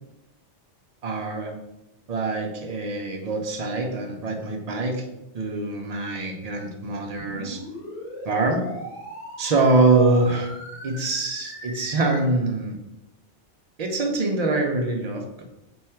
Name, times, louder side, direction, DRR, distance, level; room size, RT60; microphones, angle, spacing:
voice 1, 1.0-1.5 2.1-5.1 5.3-7.6 8.2-8.7 9.4-10.5 10.8-12.8 13.8-15.4, right 3 dB, 60° right, 2 dB, 0.4 m, -24 dB
sound 1, 7.2-12.2, left 1 dB, 80° left, 1.7 m, -38 dB
3.4 x 2.3 x 4.3 m, 0.92 s
omnidirectional pair, 1.2 m